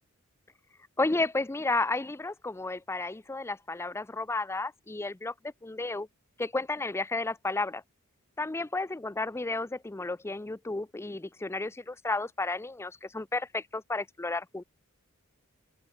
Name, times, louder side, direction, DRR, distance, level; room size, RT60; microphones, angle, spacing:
voice 1, 1.0-6.1 6.4-7.8 8.4-14.6, left 3 dB, 10° left, 0.5 m, -32 dB
open air
head